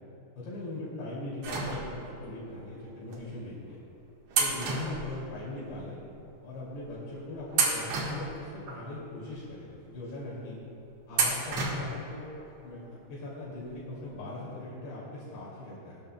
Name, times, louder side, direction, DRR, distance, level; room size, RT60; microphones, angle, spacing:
voice 1, 0.4-3.8 4.4-6.0 6.4-10.6 11.1-12.3 12.6-16.0, left 1 dB, 70° left, -8 dB, 4.7 m, -40 dB
sound 1, 1.4-2.3 3.1-3.2 4.3-5.7 6.0-6.1 6.9-7.1 7.5-8.8 9.3-9.4 11.1-12.1 12.4-12.5 13.7-13.8 14.1-14.2, right 4 dB, 60° right, 2.1 m, -31 dB
20.5 x 12.0 x 2.2 m, 2.8 s
omnidirectional pair, 5.1 m